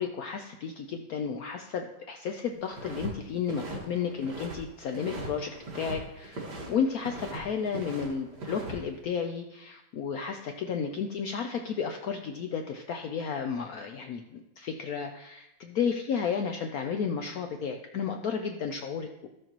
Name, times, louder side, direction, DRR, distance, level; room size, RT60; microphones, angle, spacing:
voice 1, 0.0-19.3, left 6 dB, 70° left, 4 dB, 0.8 m, -33 dB
sound 1, 2.7-3.1 3.4-4.6 4.9-6.0 6.2-7.4 7.7-8.7, right 2 dB, 60° right, 2.2 m, -39 dB
13.5 x 6.4 x 3.0 m, 0.89 s
omnidirectional pair, 2.0 m